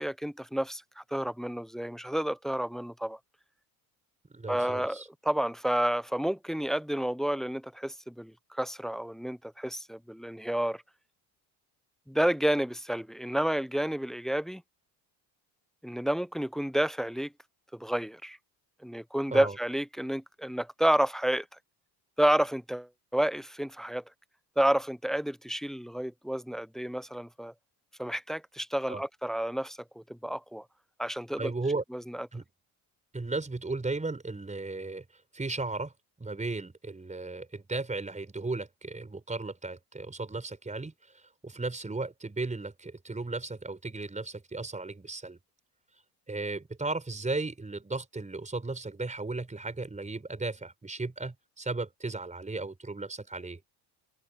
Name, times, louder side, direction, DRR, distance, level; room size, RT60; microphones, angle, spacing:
voice 1, 0.0-3.2 4.5-10.8 12.1-14.6 15.8-17.3 17.7-18.4 18.8-21.5 22.2-24.0 24.6-27.5 28.0-30.6 31.0-31.5 31.9-32.3, right 1 dB, ahead, 0.3 m, -30 dB
voice 2, 4.3-5.1 19.3-19.5 28.9-29.0 31.4-31.8 32.3-32.4 33.1-45.4 46.3-53.6, right 3 dB, 15° right, 5.1 m, -35 dB
open air
supercardioid pair, 95°, 48 cm